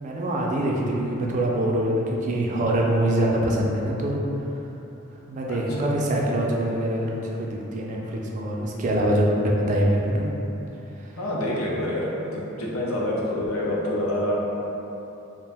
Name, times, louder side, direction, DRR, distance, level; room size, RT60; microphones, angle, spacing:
voice 1, 0.0-4.2 5.3-10.3 11.0-11.1, right 1 dB, 35° right, -2 dB, 0.3 m, -24 dB
voice 2, 5.5-5.9 11.2-14.4, left 1 dB, 80° left, -4 dB, 0.5 m, -27 dB
2.4 x 2.2 x 3.3 m, 3.0 s
head